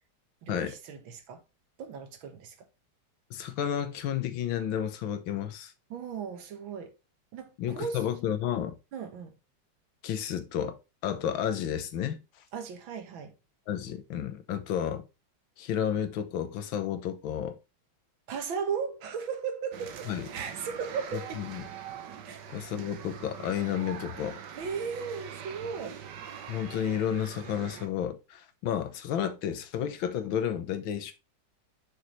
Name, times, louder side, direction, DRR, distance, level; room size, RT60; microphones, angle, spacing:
voice 1, 0.4-1.4 1.8-2.7 5.9-7.0 7.3-8.1 8.9-9.3 12.5-13.4 18.3-21.4 22.2-22.4 24.6-26.0, right 6 dB, 85° right, 2.0 m, -36 dB
voice 2, 3.3-5.7 7.6-8.8 10.0-10.8 11.0-12.2 13.7-15.0 15.6-17.6 20.1-20.3 21.4-21.6 22.5-24.4 26.5-31.1, left 9 dB, 85° left, 1.7 m, -31 dB
sound 1, 19.7-27.9, right 8 dB, 65° right, 1.5 m, -43 dB
6.7 x 5.5 x 3.1 m
omnidirectional pair, 2.1 m